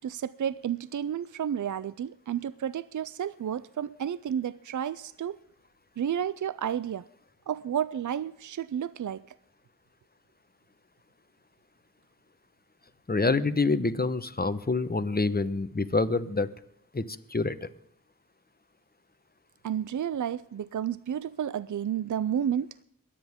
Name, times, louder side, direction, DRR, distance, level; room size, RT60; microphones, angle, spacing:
voice 1, 0.0-5.4 6.0-7.1 7.5-9.2 19.6-22.7, right 9 dB, 60° right, 0.5 m, -31 dB
voice 2, 13.1-16.5 16.9-17.7, left 3 dB, 30° left, 1.1 m, -27 dB
23.0 x 10.0 x 3.6 m
wide cardioid pair, 55°, 33 cm